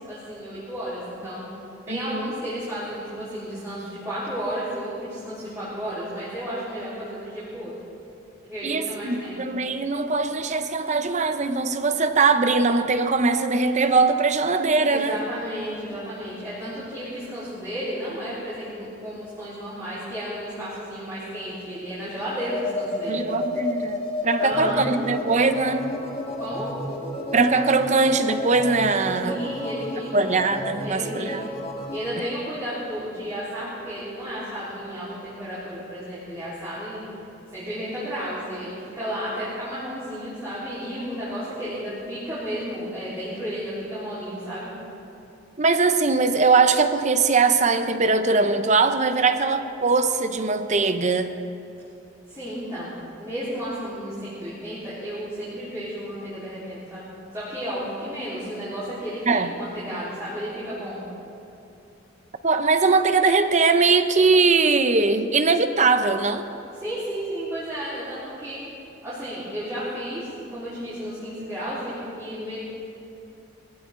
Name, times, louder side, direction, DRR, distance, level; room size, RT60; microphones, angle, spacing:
voice 1, 0.1-1.4 1.9-7.7 8.5-9.4 14.9-23.2 24.4-24.8 26.4-26.7 29.2-30.3 30.8-31.5 31.9-37.0 37.5-44.7 52.3-59.2 59.5-61.0 66.7-68.6 69.0-72.6, equal, 15° right, -12 dB, 4.0 m, -33 dB
voice 2, 1.9-2.3 8.6-15.2 23.1-26.0 27.3-29.4 30.1-31.4 45.6-51.3 59.3-59.5 62.4-66.5, right 4 dB, 35° right, 9 dB, 0.7 m, -21 dB
sound 1, 22.3-32.1, left 1 dB, 30° left, 1.9 m, -32 dB
20.0 x 16.0 x 3.8 m, 2.7 s
head